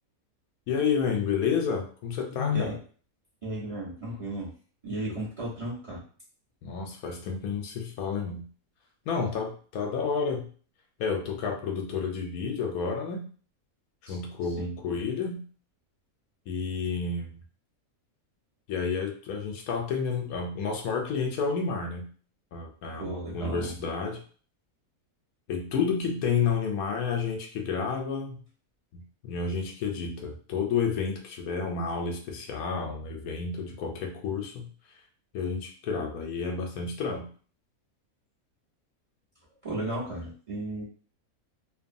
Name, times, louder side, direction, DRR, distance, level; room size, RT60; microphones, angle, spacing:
voice 1, 0.7-2.8 5.1-5.2 6.6-8.5 9.1-10.5 11.0-13.3 14.0-15.5 16.5-17.4 18.7-22.1 22.5-24.2 25.5-28.4 28.9-34.7 35.3-37.3, left 5 dB, 85° left, 2 dB, 1.1 m, -30 dB
voice 2, 3.4-4.5 4.8-6.0 14.1-14.2 14.6-14.8 23.0-23.7 39.6-40.8, right 1 dB, 25° right, -6 dB, 0.9 m, -34 dB
2.8 x 2.3 x 2.5 m, 0.42 s
omnidirectional pair, 1.5 m